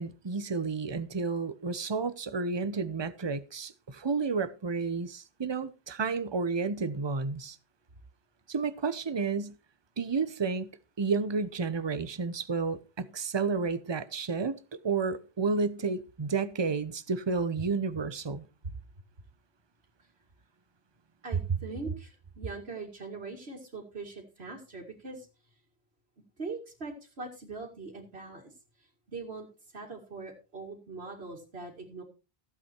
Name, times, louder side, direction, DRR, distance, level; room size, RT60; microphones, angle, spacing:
voice 1, 0.0-7.6 8.5-9.5 10.0-10.7 11.0-14.5 14.8-18.4, right 4 dB, 30° right, 0.8 m, -31 dB
voice 2, 21.2-25.6 26.4-32.0, right 3 dB, 75° right, 2.5 m, -42 dB
15.5 x 8.4 x 4.5 m
omnidirectional pair, 1.1 m